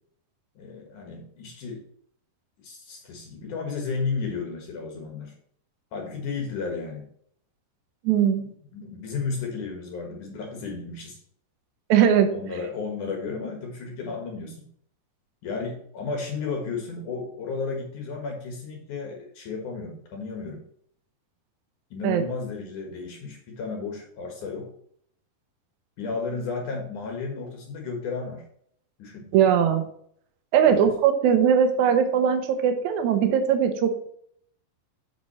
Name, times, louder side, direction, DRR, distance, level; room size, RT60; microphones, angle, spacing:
voice 1, 0.6-1.8 2.6-5.3 5.9-7.1 8.4-11.2 12.3-14.7 15.4-20.6 21.9-24.7 26.0-28.5 29.0-29.3 30.7-30.9, left 4 dB, 60° left, 2 dB, 2.4 m, -33 dB
voice 2, 8.0-8.4 11.9-12.3 22.0-22.2 29.3-29.8 30.5-34.1, right 8 dB, 75° right, 6 dB, 1.7 m, -20 dB
8.1 x 6.0 x 4.2 m, 0.65 s
omnidirectional pair, 4.8 m